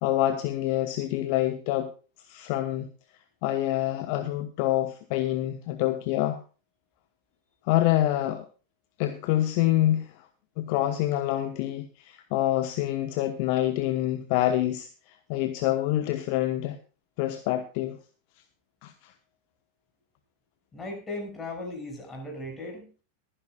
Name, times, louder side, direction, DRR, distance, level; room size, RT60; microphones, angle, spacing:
voice 1, 0.0-1.9 2.2-2.9 3.4-6.4 7.7-8.5 9.0-10.3 10.6-16.8 17.2-18.0 18.8-19.1, left 14 dB, 45° left, 1.1 m, -26 dB
voice 2, 20.7-22.9, left 2 dB, 15° left, 6.4 m, -37 dB
22.5 x 10.0 x 2.4 m
figure-of-eight pair, 90°, 0 cm